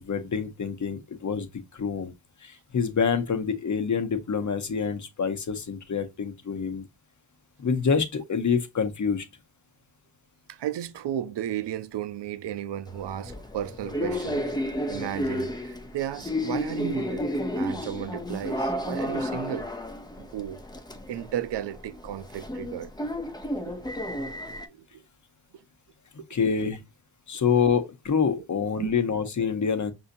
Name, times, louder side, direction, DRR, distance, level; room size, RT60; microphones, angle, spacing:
voice 1, 0.0-2.1 2.4-6.8 7.6-9.3 26.3-26.8 27.3-29.9, left 6 dB, 40° left, 0.9 m, -26 dB
voice 2, 10.5-14.5 14.9-17.3 17.5-19.7 20.2-20.6 21.1-22.9 23.7-23.9 24.3-25.0 25.5-25.6 26.2-26.3 26.6-26.7 27.3-27.6 28.3-28.5 28.8-28.9, right 11 dB, 65° right, 0.6 m, -34 dB
sound 1, 12.9-24.7, left 1 dB, 10° left, 0.6 m, -32 dB
5.4 x 2.7 x 2.6 m
cardioid pair, 70°, 46 cm